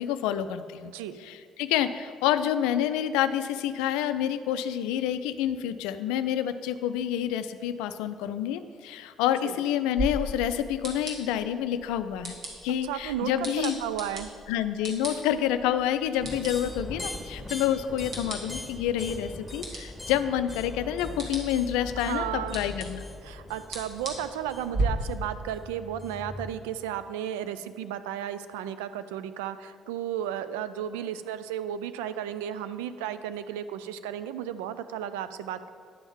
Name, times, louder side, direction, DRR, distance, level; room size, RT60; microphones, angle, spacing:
voice 1, 0.0-0.9 1.2-12.3 12.6-13.8 14.5-23.1, left 10 dB, 80° left, 11 dB, 0.4 m, -28 dB
sound 1, 10.0-24.8, right 2 dB, 55° right, 1.9 m, -39 dB
voice 2, 12.8-13.3 13.6-14.3 15.1-15.2 22.0-22.6 23.2-35.7, right 10 dB, 85° right, 12 dB, 0.3 m, -34 dB
sound 2, 16.2-26.5, left 2 dB, 15° left, 1.8 m, -41 dB
9.9 x 3.6 x 7.0 m, 2.1 s
hypercardioid pair, 55°, 0 cm